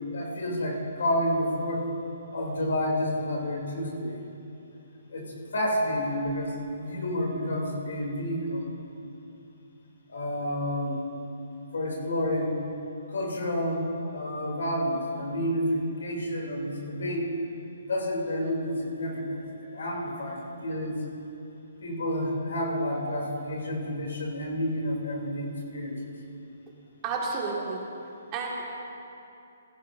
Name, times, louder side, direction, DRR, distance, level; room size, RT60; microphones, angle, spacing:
voice 1, 0.1-1.9 2.3-4.2 5.1-8.7 10.1-11.0 11.7-12.5 13.1-13.8 14.1-17.4 17.8-19.4 19.7-21.0 21.8-25.9, left 1 dB, 75° left, -1 dB, 3.0 m, -30 dB
voice 2, 27.0-27.8 28.3-28.6, right 4 dB, 25° right, -2 dB, 1.7 m, -31 dB
16.0 x 15.0 x 2.6 m, 2.8 s
hypercardioid pair, 155°, 0 cm